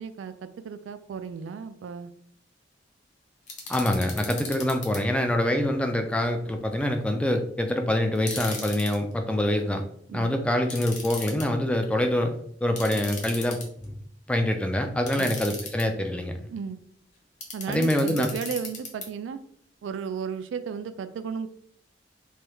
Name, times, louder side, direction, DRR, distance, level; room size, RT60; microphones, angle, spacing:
voice 1, 0.0-2.1 10.1-10.3 15.2-15.4 16.5-16.8 17.5-19.4 19.8-21.5, right 6 dB, 90° right, 11 dB, 0.3 m, -34 dB
sound 1, 3.5-5.0 8.1-9.0 10.7-11.4 12.8-13.8 15.1-15.8 17.4-19.1, left 4 dB, 45° left, 0.7 m, -37 dB
voice 2, 3.7-9.8 10.1-14.0 14.3-16.4 17.7-18.3, left 1 dB, 5° left, 5 dB, 0.3 m, -25 dB
3.2 x 2.3 x 2.9 m, 0.64 s
head